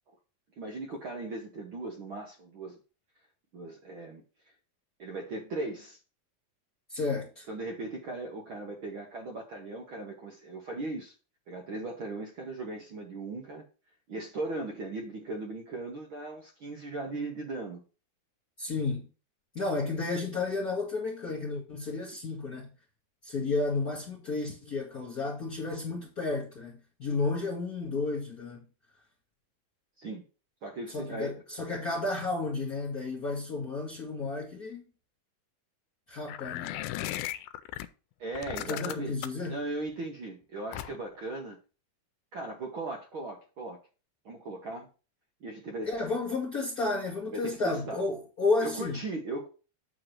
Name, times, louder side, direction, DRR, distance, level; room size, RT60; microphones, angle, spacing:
voice 1, 0.6-2.8 3.5-4.2 5.0-6.0 7.5-11.1 11.5-13.6 14.1-17.8 30.0-30.2 30.6-31.3 38.2-39.2 39.4-41.6 42.3-43.8 44.2-44.9 45.4-45.9 47.3-48.0 48.6-49.5, right 2 dB, 65° right, 1.2 m, -38 dB
voice 2, 6.9-7.5 18.6-19.1 19.5-22.7 23.2-28.6 30.9-34.9 36.1-36.7 38.7-39.6 45.8-49.0, left 3 dB, 65° left, 0.8 m, -32 dB
sound 1, 36.3-37.9 38.3-39.5 40.7-41.2, left 14 dB, 90° left, 2.4 m, -36 dB
8.6 x 3.0 x 6.4 m
omnidirectional pair, 4.1 m